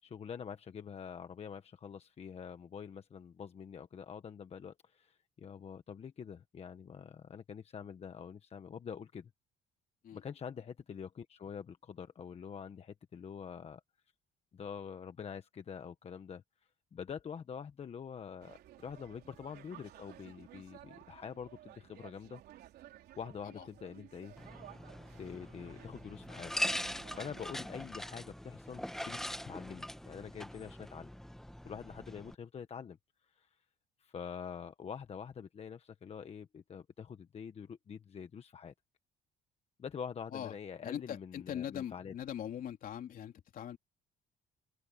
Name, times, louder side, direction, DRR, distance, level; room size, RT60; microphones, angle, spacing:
voice 1, 0.0-9.3 10.1-13.8 14.5-16.4 16.9-22.4 23.2-24.3 25.2-26.5 27.1-29.2 29.4-31.1 31.6-33.0 33.3-33.5 34.0-38.7 39.8-42.1, left 7 dB, 35° left, 1.4 m, -46 dB
sound 1, 18.4-27.4, right 13 dB, 70° right, 4.1 m, -56 dB
sound 2, 24.4-32.3, equal, ahead, 1.2 m, -42 dB
voice 2, 40.8-43.8, left 9 dB, 55° left, 3.1 m, -41 dB
cardioid pair, 110°, 17 cm